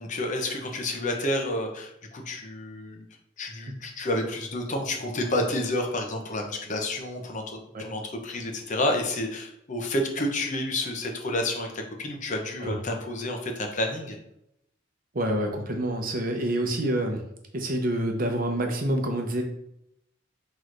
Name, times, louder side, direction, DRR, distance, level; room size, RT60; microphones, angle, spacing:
voice 1, 0.0-3.0 3.4-14.2, left 1 dB, 40° left, 2 dB, 0.7 m, -30 dB
voice 2, 15.1-17.2 17.5-19.4, right 1 dB, 45° right, 4 dB, 0.7 m, -27 dB
6.1 x 3.0 x 2.5 m, 0.79 s
head